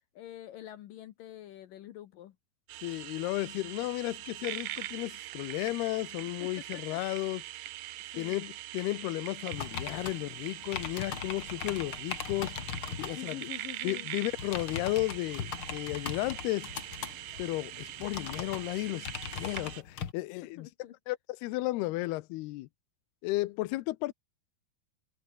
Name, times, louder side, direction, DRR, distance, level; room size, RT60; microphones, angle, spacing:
voice 1, 0.2-2.4 6.4-7.0 8.1-8.6 13.1-14.1 20.6-20.9, left 12 dB, 70° left, 2.6 m, -46 dB
sound 1, 2.7-19.8, right 14 dB, 90° right, 1.6 m, -43 dB
voice 2, 2.8-7.4 8.2-12.6 13.0-13.4 13.8-16.7 17.4-20.7 21.1-22.7 23.2-24.1, left 19 dB, 85° left, 2.8 m, -34 dB
sound 2, 9.5-13.2 14.2-20.1, left 7 dB, 45° left, 2.1 m, -40 dB
omnidirectional pair, 4.5 m